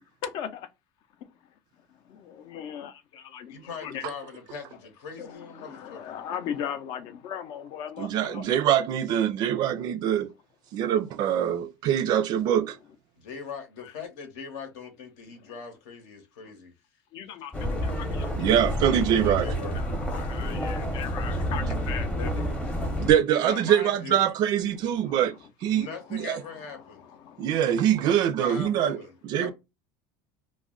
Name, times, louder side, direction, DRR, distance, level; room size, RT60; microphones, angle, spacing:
voice 1, 0.2-0.7 2.1-4.0 5.2-8.4 13.8-13.9 15.4-15.5 17.1-18.8 19.6-23.1 24.7-26.0 26.3-28.1, left 8 dB, 55° left, 0.5 m, -39 dB
voice 2, 3.5-6.1 13.2-16.7 19.1-19.8 23.4-24.3 25.7-27.1 28.4-29.5, left 6 dB, 75° left, 0.9 m, -40 dB
voice 3, 8.0-10.3 10.7-12.8 18.4-19.5 23.0-25.3 25.6-26.4 27.4-29.0 29.2-29.5, right 10 dB, 50° right, 0.4 m, -24 dB
sound 1, 17.5-23.1, equal, 10° left, 0.7 m, -29 dB
2.3 x 2.1 x 3.6 m
supercardioid pair, 125°, 9 cm